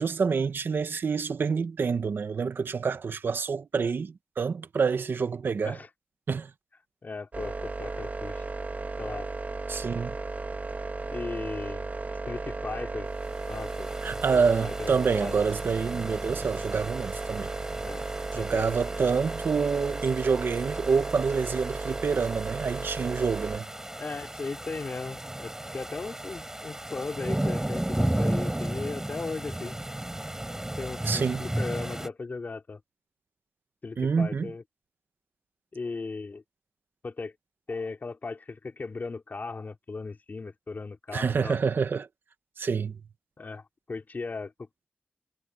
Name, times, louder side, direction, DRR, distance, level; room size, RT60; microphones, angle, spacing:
voice 1, 0.0-5.8 6.3-6.5 9.7-10.2 14.0-17.5 18.3-23.7 31.0-31.4 34.0-34.5 41.1-42.1 42.6-43.0, right 5 dB, 80° right, 0.9 m, -27 dB
voice 2, 7.0-8.4 9.0-9.3 11.1-11.9 12.3-13.1 13.5-13.9 14.3-15.4 17.8-18.0 18.3-18.8 24.0-29.7 30.8-32.8 33.8-34.6 35.7-36.4 37.0-37.3 37.7-41.6 43.4-44.7, left 4 dB, 55° left, 4.0 m, -37 dB
sound 1, 7.3-23.6, right 3 dB, 45° right, 1.4 m, -35 dB
sound 2, 13.2-32.1, right 1 dB, 15° right, 5.8 m, -35 dB
wide cardioid pair, 80°, 4 cm